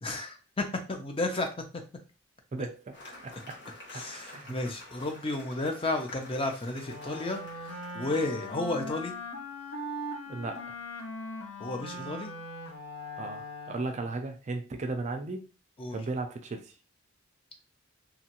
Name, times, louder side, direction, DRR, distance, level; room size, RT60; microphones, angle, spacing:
voice 1, 0.0-1.5 3.9-9.1 11.6-12.3 15.8-16.0, left 2 dB, 25° left, 4 dB, 0.5 m, -32 dB
voice 2, 2.5-3.0 3.2-3.6 4.1-4.5 10.3-10.8 13.2-15.5 15.9-16.7, right 3 dB, 35° right, 5 dB, 0.4 m, -36 dB
Cheering / Applause, 2.9-8.7, left 2 dB, 55° left, 1.0 m, -49 dB
Wind instrument woodwind instrument, 6.8-14.2, left 1 dB, 85° left, 0.8 m, -40 dB
2.9 x 2.4 x 2.9 m, 0.33 s
head